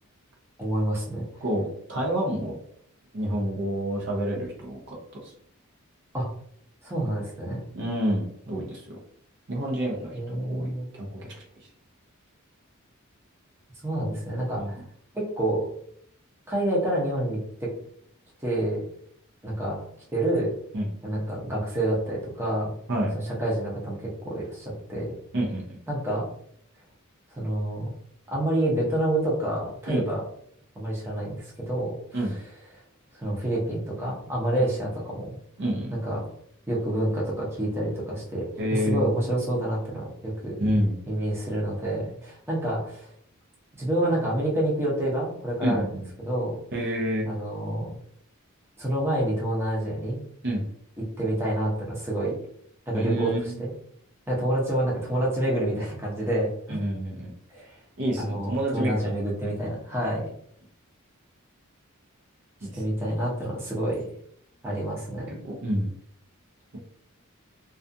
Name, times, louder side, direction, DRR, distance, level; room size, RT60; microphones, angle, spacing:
voice 1, 0.6-1.4 6.1-6.3 6.8-7.6 10.1-10.9 13.8-14.8 15.1-15.7 16.5-17.8 18.4-18.8 19.4-19.8 20.1-20.5 21.0-22.7 23.4-25.1 25.9-26.3 27.4-27.9 28.3-30.2 30.8-32.0 33.2-35.4 35.9-36.2 36.7-40.6 41.1-43.1 43.8-45.8 46.2-46.6 47.3-47.9 48.8-50.2 51.0-52.4 52.9-53.7 54.3-56.8 57.5-57.6 58.2-60.2 62.7-64.1 64.6-65.4, right 1 dB, 10° right, -6 dB, 0.7 m, -28 dB
voice 2, 1.4-2.6 3.1-5.3 7.7-9.0 9.5-11.4 14.6-14.8 20.7-20.9 22.9-23.1 25.3-25.8 29.9-30.1 32.1-32.3 34.5-34.6 35.6-36.0 38.6-39.1 40.6-41.0 45.6-46.1 46.7-47.3 50.4-50.6 52.9-53.6 56.7-57.3 58.0-59.1 62.6-62.7 65.4-65.9, equal, 55° right, -1 dB, 0.6 m, -28 dB
2.4 x 2.3 x 2.6 m, 0.65 s
head